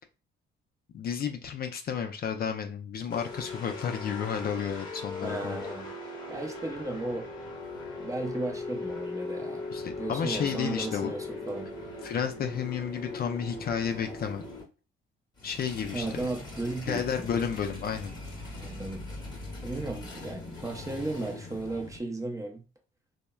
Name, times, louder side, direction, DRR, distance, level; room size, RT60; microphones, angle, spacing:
voice 1, 0.9-5.6 9.7-11.1 12.0-14.4 15.4-16.3 16.9-18.2, left 7 dB, 50° left, 6 dB, 0.4 m, -32 dB
sound 1, 3.1-14.6 15.4-22.0, left 3 dB, 20° left, 0.9 m, -40 dB
voice 2, 5.2-5.9 6.3-7.2 8.0-9.6 10.0-11.7 15.9-17.3 18.6-19.2 19.6-22.6, right 2 dB, 15° right, 2 dB, 0.6 m, -35 dB
3.0 x 2.1 x 2.2 m, 0.32 s
cardioid pair, 90°, 20 cm